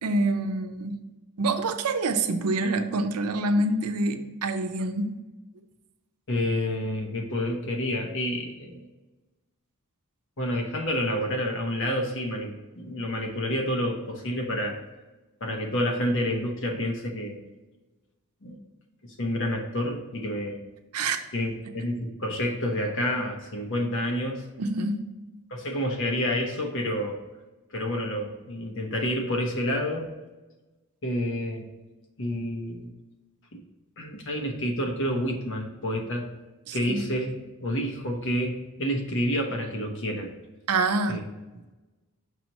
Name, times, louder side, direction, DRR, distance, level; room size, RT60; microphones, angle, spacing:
voice 1, 0.0-1.0 1.4-5.2 20.9-21.2 24.6-25.1 36.7-37.1 40.7-41.2, right 2 dB, 90° right, 7 dB, 0.6 m, -26 dB
voice 2, 6.3-8.9 10.4-14.8 15.4-17.4 18.4-18.6 19.0-20.6 21.3-24.4 25.5-27.2 27.7-30.1 31.0-31.7 32.2-32.9 33.5-33.6 34.0-36.3 36.7-37.3 37.6-40.3 41.1-41.2, equal, 60° left, 2 dB, 1.0 m, -29 dB
6.0 x 3.0 x 5.3 m, 1.1 s
head